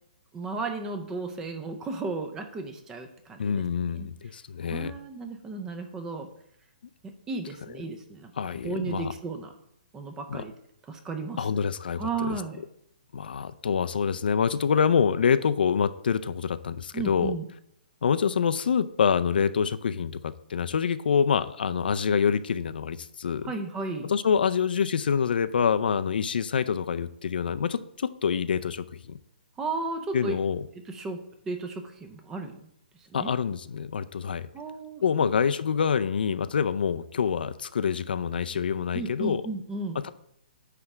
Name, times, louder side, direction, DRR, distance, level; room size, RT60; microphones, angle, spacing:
voice 1, 0.3-3.6 3.9-4.1 4.7-6.3 7.0-8.3 8.6-9.5 9.9-10.5 10.9-11.6 12.0-12.6 16.9-17.4 23.4-24.1 29.6-30.3 30.9-32.6 33.1-33.3 34.5-35.3 38.9-40.0, right 3 dB, 10° right, 6 dB, 0.5 m, -34 dB
voice 2, 3.4-4.9 8.4-9.1 10.3-10.4 11.4-12.4 13.1-17.3 18.0-23.5 24.0-29.2 30.1-30.6 33.1-34.5 35.0-39.4 40.0-40.1, left 7 dB, 70° left, 13 dB, 0.5 m, -26 dB
9.6 x 3.3 x 6.0 m, 0.74 s
hypercardioid pair, 170°, 5 cm